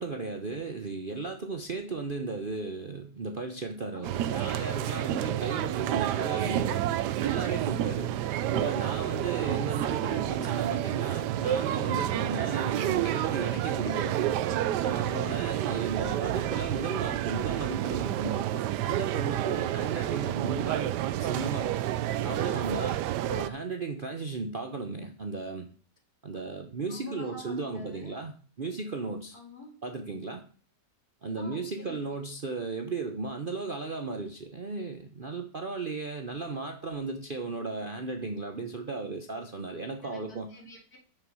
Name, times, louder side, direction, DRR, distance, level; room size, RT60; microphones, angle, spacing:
voice 1, 0.0-6.9 7.2-8.1 8.5-14.3 14.8-21.7 22.2-23.0 23.3-25.7 26.2-29.4 29.8-30.4 31.2-40.5, right 3 dB, 40° right, 0.8 m, -35 dB
voice 2, 3.9-4.3 12.1-12.5 26.3-26.5 26.9-28.2 29.3-29.8 31.4-32.2 40.0-41.0, left 1 dB, 60° left, 2.9 m, -48 dB
sound 1, 4.0-23.5, right 12 dB, 75° right, 1.1 m, -29 dB
6.8 x 6.6 x 6.3 m
omnidirectional pair, 1.9 m